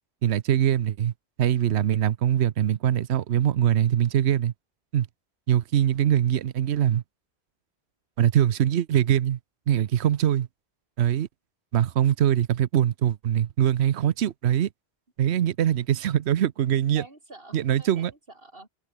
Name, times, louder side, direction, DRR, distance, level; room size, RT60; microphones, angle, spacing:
voice 1, 0.2-1.1 1.4-4.5 4.9-5.1 5.5-7.0 8.2-9.4 9.7-10.5 11.0-11.3 11.7-14.7 15.2-17.0 17.5-18.1, right 10 dB, 80° right, 1.0 m, -22 dB
voice 2, 16.7-18.7, right 2 dB, 55° right, 4.6 m, -47 dB
omnidirectional pair, 1.1 m